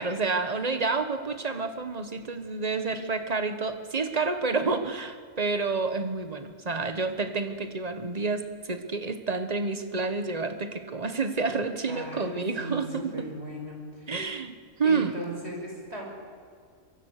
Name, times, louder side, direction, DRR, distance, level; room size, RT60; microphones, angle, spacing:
voice 1, 0.0-13.1 14.1-14.5 14.8-15.1, right 4 dB, 30° right, 8 dB, 1.4 m, -29 dB
voice 2, 11.8-14.2 14.8-16.0, right 1 dB, 50° right, 0 dB, 5.8 m, -38 dB
24.5 x 23.0 x 6.7 m, 2.1 s
omnidirectional pair, 1.4 m